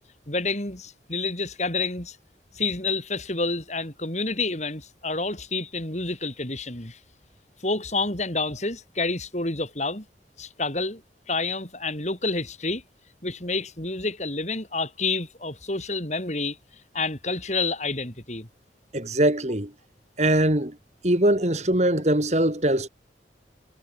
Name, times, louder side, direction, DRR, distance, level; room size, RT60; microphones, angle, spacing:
voice 1, 0.3-2.2 2.5-7.0 7.6-10.1 10.4-11.0 11.3-12.8 13.2-16.6 16.9-18.5, left 3 dB, 40° left, 5.1 m, -29 dB
voice 2, 18.9-19.7 20.2-20.8 21.0-22.9, right 1 dB, 40° right, 3.0 m, -22 dB
head